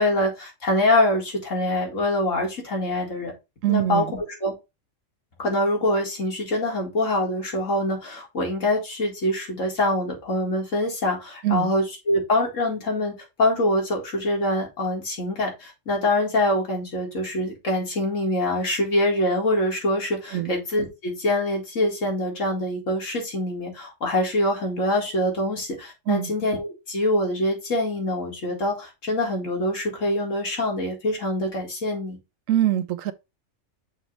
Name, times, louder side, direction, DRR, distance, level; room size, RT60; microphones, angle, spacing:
voice 1, 0.0-3.3 3.7-4.5 5.4-32.2, left 1 dB, 75° left, 2.4 m, -24 dB
voice 2, 3.6-4.1 11.4-11.7 20.3-20.5 26.1-26.3 32.5-33.1, right 13 dB, 85° right, 1.1 m, -23 dB
6.3 x 3.0 x 5.2 m
omnidirectional pair, 1.3 m